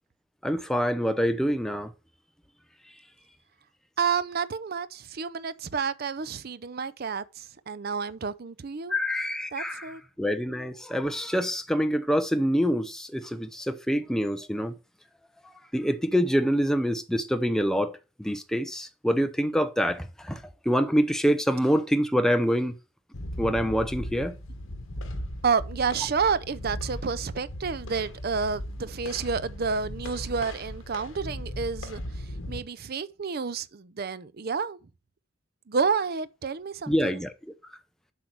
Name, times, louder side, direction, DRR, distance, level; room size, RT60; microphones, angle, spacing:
voice 1, 0.4-1.9 8.9-14.7 15.7-22.7 23.4-24.3 36.9-37.3, equal, ahead, 0.7 m, -26 dB
voice 2, 4.0-8.9 9.5-10.0 25.4-32.0 32.5-34.8 35.7-37.2, right 5 dB, 50° right, 0.5 m, -30 dB
sound 1, 23.1-32.6, left 1 dB, 80° left, 1.5 m, -37 dB
8.0 x 4.7 x 6.1 m
head